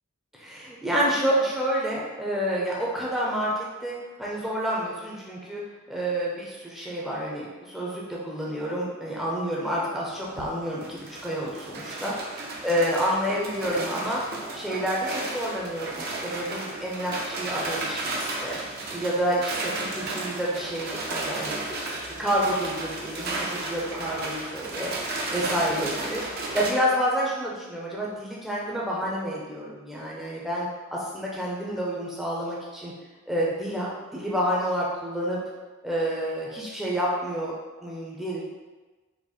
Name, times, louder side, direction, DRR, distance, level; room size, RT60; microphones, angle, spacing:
voice 1, 0.3-5.6 5.9-12.2 12.6-14.2 14.5-21.8 22.2-24.9 25.3-32.9 33.3-35.4 35.8-37.5 37.8-38.4, equal, ahead, -5 dB, 0.6 m, -29 dB
sound 1, 10.1-26.7, right 2 dB, 45° right, 0.6 m, -33 dB
4.9 x 2.1 x 4.1 m, 1.3 s
head